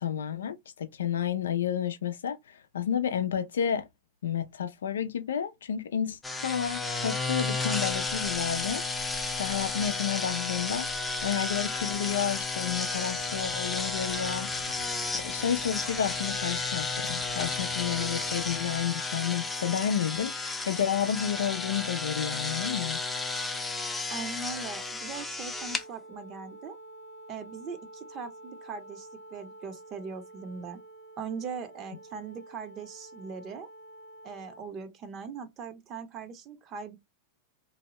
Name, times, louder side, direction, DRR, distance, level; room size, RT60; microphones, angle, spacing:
voice 1, 0.0-2.4 2.7-3.9 4.2-8.8 9.4-10.9 11.2-14.5 15.1-23.0, left 8 dB, 85° left, 0.4 m, -31 dB
sound 1, 6.2-25.8, left 3 dB, 10° left, 0.5 m, -33 dB
sound 2, 13.1-18.8, right 3 dB, 85° right, 0.8 m, -49 dB
voice 2, 24.1-26.8 27.3-30.8 31.2-33.7 34.2-37.0, right 5 dB, 40° right, 0.7 m, -40 dB
Wind instrument woodwind instrument, 25.5-34.7, right 2 dB, 60° right, 1.0 m, -49 dB
2.7 x 2.1 x 2.9 m
hypercardioid pair, 105°, 0 cm